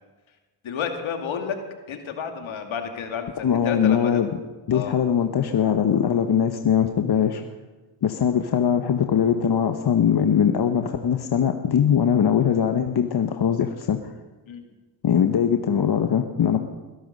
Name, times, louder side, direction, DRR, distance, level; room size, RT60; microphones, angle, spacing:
voice 1, 0.6-1.6 1.9-4.2 4.7-5.0 14.5-14.7, left 7 dB, 70° left, 4 dB, 2.5 m, -31 dB
voice 2, 3.4-4.3 4.7-7.4 8.0-14.0 15.0-16.6, left 8 dB, 50° left, 6 dB, 1.2 m, -21 dB
21.0 x 12.0 x 5.4 m, 1.2 s
supercardioid pair, 60°, 49 cm